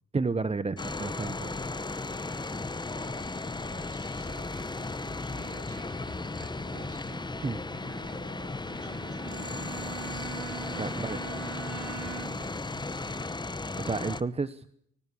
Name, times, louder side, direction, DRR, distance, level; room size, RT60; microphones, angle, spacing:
voice 1, 0.1-1.5 7.4-7.6 10.8-11.2 13.6-14.6, right 4 dB, 20° right, 14 dB, 0.9 m, -31 dB
sound 1, 0.8-14.2, left 3 dB, 15° left, 1.0 m, -35 dB
voice 2, 2.9-7.4 7.9-9.6 10.6-12.5, right 4 dB, 50° right, 9 dB, 7.9 m, -53 dB
sound 2, 5.2-13.3, right 7 dB, 85° right, 2.7 m, -53 dB
Bowed string instrument, 8.5-12.6, right 10 dB, 70° right, 4.1 m, -43 dB
24.5 x 18.0 x 8.4 m, 0.72 s
cardioid pair, 90°, 30 cm